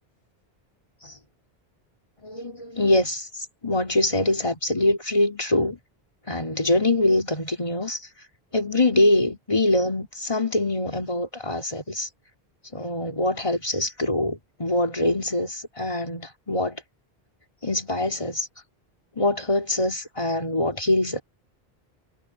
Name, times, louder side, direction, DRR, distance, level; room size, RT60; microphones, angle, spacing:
voice 1, 2.2-3.3 3.6-5.8 6.3-8.0 8.5-12.1 12.7-16.8 17.6-18.5 19.2-21.2, left 1 dB, 30° left, 3.0 m, -24 dB
omnidirectional pair, 1.0 m